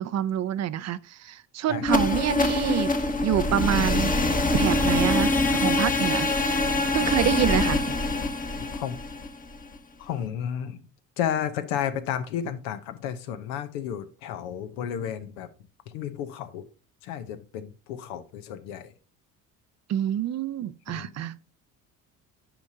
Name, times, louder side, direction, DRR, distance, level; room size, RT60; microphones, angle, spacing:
voice 1, 0.0-2.9 3.2-6.3 6.9-7.8 19.9-21.5, right 11 dB, 40° right, 0.5 m, -27 dB
voice 2, 1.7-2.1 8.6-9.0 10.0-10.9 11.2-15.5 15.9-16.7 17.0-18.9 20.9-21.3, left 9 dB, 80° left, 1.0 m, -32 dB
sound 1, 1.8-9.8, left 2 dB, 20° left, 1.0 m, -24 dB
8.8 x 5.1 x 2.7 m
hypercardioid pair, 65°, 42 cm